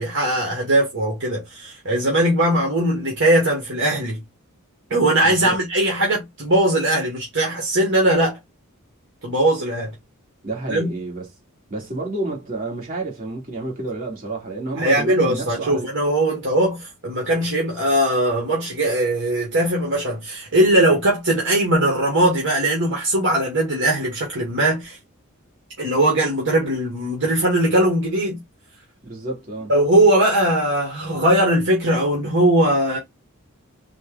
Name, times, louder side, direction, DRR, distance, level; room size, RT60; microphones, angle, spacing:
voice 1, 0.0-4.2 4.9-8.4 9.2-9.9 10.7-10.9 14.8-25.0 25.8-28.4 29.7-33.0, right 1 dB, 60° right, 1.5 m, -20 dB
voice 2, 10.4-11.3 11.7-15.9 29.0-29.7, right 2 dB, 40° right, 2.0 m, -29 dB
4.2 x 2.3 x 3.6 m
head